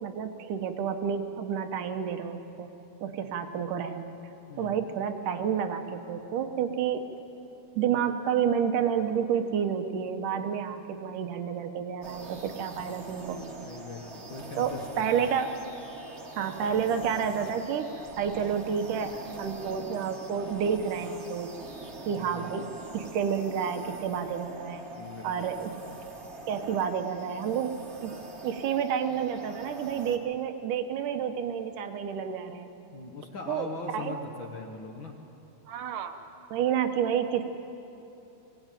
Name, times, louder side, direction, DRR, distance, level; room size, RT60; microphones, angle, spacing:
voice 1, 0.0-2.7 3.0-4.1 4.6-7.1 7.8-13.4 14.6-15.5 16.4-17.9 18.2-21.5 22.1-22.7 22.9-24.9 25.2-26.0 26.5-27.7 28.0-28.2 28.4-32.7 33.5-34.1 35.7-36.2 36.5-37.5, right 7 dB, 85° right, 6 dB, 2.7 m, -30 dB
sound 1, 12.0-30.2, right 2 dB, 30° right, 1.2 m, -43 dB
voice 2, 13.6-15.3 22.1-22.7 24.9-25.5 32.9-35.1, left 3 dB, 50° left, 2 dB, 1.6 m, -41 dB
21.0 x 17.5 x 9.1 m, 3.0 s
omnidirectional pair, 3.6 m